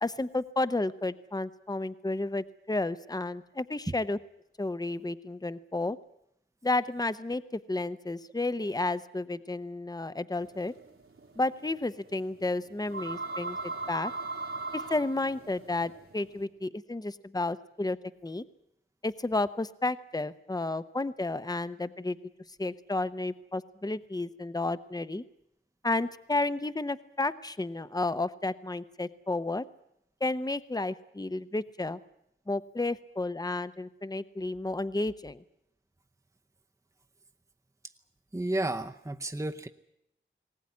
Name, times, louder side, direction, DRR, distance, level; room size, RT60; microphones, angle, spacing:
voice 1, 0.0-4.2 4.6-6.0 6.6-10.7 11.4-14.1 14.7-18.0 18.2-18.4 19.0-22.2 22.6-25.2 25.8-29.6 30.2-32.0 32.5-35.4, left 2 dB, 20° left, 14 dB, 0.8 m, -32 dB
sound 1, 10.4-16.4, right 3 dB, 80° right, 3.0 m, -39 dB
voice 2, 38.3-39.7, right 1 dB, 15° right, 5 dB, 0.8 m, -32 dB
20.0 x 18.0 x 9.6 m, 0.78 s
wide cardioid pair, 55°, 21 cm